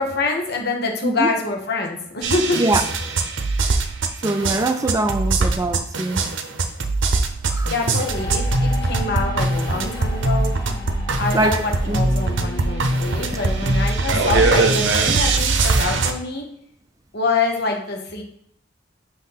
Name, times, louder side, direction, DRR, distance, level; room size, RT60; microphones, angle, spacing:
voice 1, 0.0-2.6 7.7-10.5 11.2-16.5 17.1-18.2, left 3 dB, 55° left, 1.2 m, -25 dB
sound 1, 2.2-16.1, right 3 dB, 65° right, 0.7 m, -21 dB
voice 2, 4.2-6.2 7.5-7.7 11.3-11.6 11.9-12.0, right 2 dB, 15° right, 0.4 m, -22 dB
sound 2, 8.1-15.2, left 1 dB, 25° left, 1.4 m, -32 dB
6.0 x 3.1 x 5.6 m
head